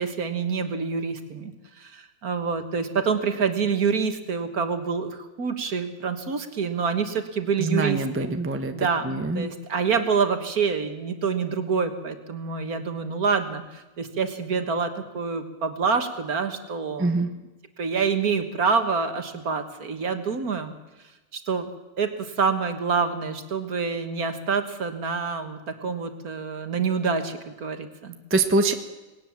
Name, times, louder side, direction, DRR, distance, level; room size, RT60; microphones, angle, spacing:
voice 1, 0.0-8.3 8.7-17.3 17.8-20.7 21.3-21.7 22.0-28.2, right 5 dB, 55° right, 8 dB, 1.9 m, -27 dB
voice 2, 7.6-9.5 17.0-17.3 28.3-28.7, right 2 dB, 10° right, 7 dB, 0.9 m, -24 dB
19.5 x 18.0 x 7.3 m, 1.1 s
omnidirectional pair, 1.9 m